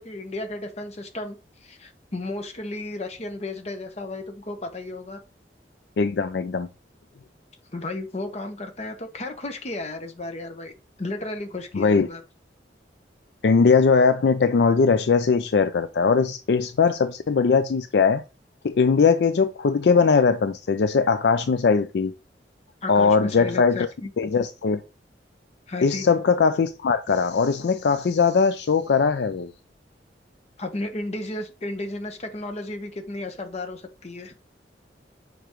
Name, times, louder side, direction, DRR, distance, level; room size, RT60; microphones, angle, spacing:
voice 1, 0.0-1.4 1.6-5.2 7.7-10.7 11.0-12.2 22.8-24.1 25.7-26.1 30.6-34.3, left 2 dB, 40° left, 0.9 m, -33 dB
voice 2, 6.0-6.7 11.7-12.1 13.4-18.2 18.6-22.1 22.9-23.9 24.2-24.8 25.8-29.5, left 5 dB, 70° left, 0.4 m, -20 dB
6.8 x 4.6 x 3.0 m
head